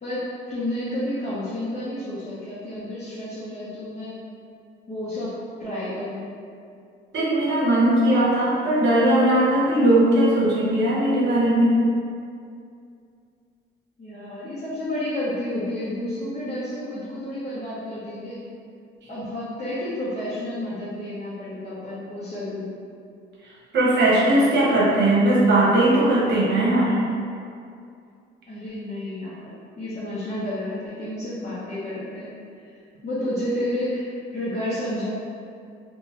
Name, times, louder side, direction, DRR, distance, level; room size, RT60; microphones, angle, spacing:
voice 1, 0.0-4.2 4.9-6.3 14.0-18.4 19.1-22.7 28.5-29.5 29.8-32.3 33.0-35.1, left 1 dB, 35° left, -12 dB, 0.8 m, -30 dB
voice 2, 7.1-11.9 23.7-27.0, right 1 dB, 60° right, -7 dB, 1.0 m, -19 dB
2.7 x 2.2 x 3.1 m, 2.4 s
cardioid pair, 90°, 20 cm